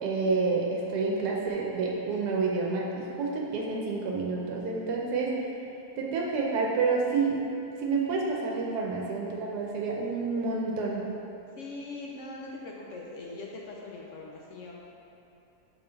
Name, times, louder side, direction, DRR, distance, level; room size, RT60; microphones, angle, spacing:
voice 1, 0.0-5.3 6.0-7.4 7.8-11.1, right 4 dB, 85° right, -2 dB, 1.2 m, -29 dB
voice 2, 11.6-14.8, left 2 dB, 65° left, -2 dB, 0.8 m, -41 dB
5.6 x 4.5 x 3.9 m, 2.9 s
omnidirectional pair, 1.7 m